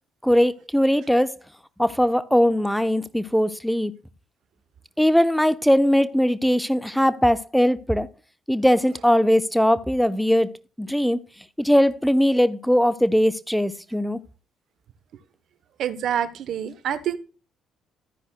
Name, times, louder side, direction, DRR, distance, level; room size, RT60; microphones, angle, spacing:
voice 1, 0.2-1.3 1.8-3.9 5.0-8.1 8.5-11.2 11.6-14.2, equal, ahead, 0.9 m, -20 dB
voice 2, 15.8-17.2, right 9 dB, 55° right, 1.0 m, -26 dB
13.0 x 9.9 x 2.3 m
figure-of-eight pair, 45°, 0 cm